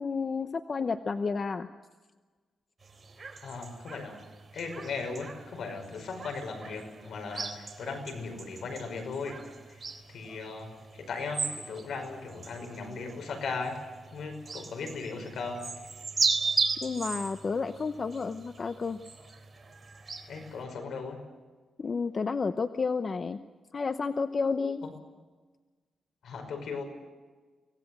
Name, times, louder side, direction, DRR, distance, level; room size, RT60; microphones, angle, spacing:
voice 1, 0.0-1.7 16.8-19.0 21.8-23.4 23.7-24.8, left 4 dB, 40° left, 9 dB, 0.8 m, -31 dB
sound 1, 2.8-20.6, right 4 dB, 30° right, 3.6 m, -37 dB
voice 2, 3.4-4.2 4.5-9.4 9.7-9.8 10.1-13.8 14.1-15.6 20.3-21.2 24.8-24.9 26.2-26.8, left 4 dB, 75° left, 5 dB, 5.6 m, -37 dB
25.0 x 17.5 x 8.0 m, 1.3 s
cardioid pair, 110°, 0 cm